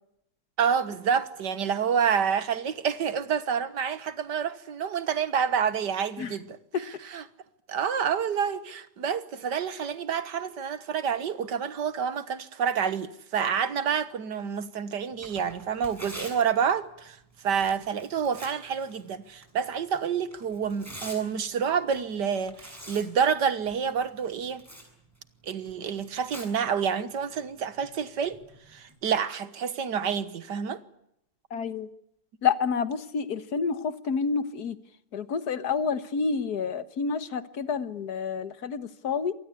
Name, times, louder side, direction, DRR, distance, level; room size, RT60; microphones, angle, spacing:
voice 1, 0.6-7.2 7.7-17.2 17.4-24.6 25.5-28.4 28.7-30.8, right 7 dB, 75° right, 1.9 m, -28 dB
Tearing, 15.1-29.0, equal, 10° right, 7.0 m, -48 dB
voice 2, 31.5-31.9 32.4-34.8 35.1-39.3, left 5 dB, 65° left, 1.8 m, -29 dB
25.5 x 19.5 x 8.4 m
omnidirectional pair, 1.9 m